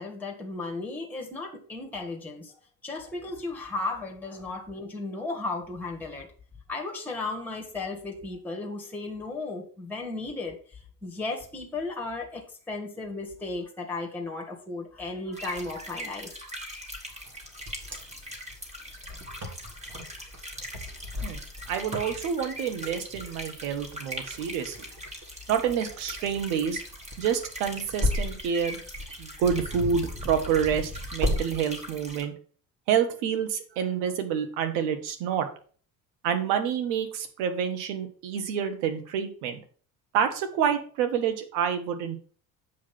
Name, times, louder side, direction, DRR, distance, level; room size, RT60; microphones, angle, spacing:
voice 1, 0.0-2.5 2.8-6.3 6.7-10.6 11.0-16.3, left 3 dB, 5° left, 1.9 m, -35 dB
sound 1, 15.3-32.2, equal, 15° right, 2.5 m, -41 dB
Wind, 17.3-31.4, left 1 dB, 35° right, 2.6 m, -36 dB
voice 2, 21.7-24.8 25.5-26.8 27.2-28.8 29.2-32.3 32.9-35.5 36.2-39.6 40.1-42.2, right 8 dB, 60° right, 1.6 m, -28 dB
8.1 x 5.1 x 5.6 m
figure-of-eight pair, 60°, 46 cm